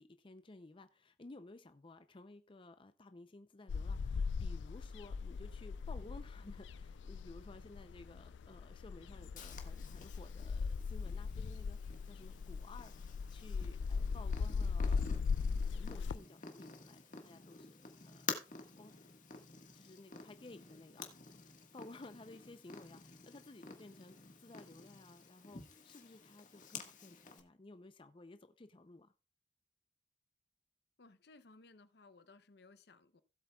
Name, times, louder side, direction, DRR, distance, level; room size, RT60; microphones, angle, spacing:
voice 1, 0.0-15.2 15.7-18.3 18.8-18.9 19.7-21.0 21.7-24.2 24.4-29.1, left 2 dB, 30° left, 0.6 m, -56 dB
sound 1, 3.7-16.2, left 5 dB, 85° left, 0.4 m, -39 dB
Purr, 9.4-27.4, left 5 dB, 45° left, 1.6 m, -50 dB
voice 2, 31.0-33.2, left 3 dB, 65° left, 0.7 m, -61 dB
16.5 x 7.9 x 2.3 m
head